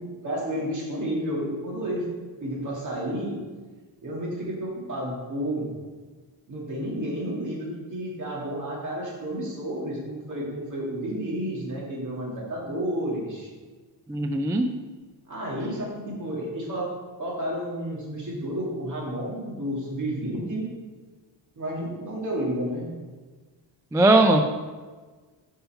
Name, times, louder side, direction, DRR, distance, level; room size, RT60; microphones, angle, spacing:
voice 1, 0.0-2.1 2.4-3.3 4.0-5.7 6.5-13.5 15.3-16.9 17.2-20.7 21.6-22.9, right 1 dB, 45° right, -4 dB, 2.4 m, -31 dB
voice 2, 14.1-14.7 23.9-24.4, right 2 dB, 10° right, 5 dB, 0.3 m, -19 dB
5.7 x 5.6 x 5.6 m, 1.4 s
cardioid pair, 130°, 44 cm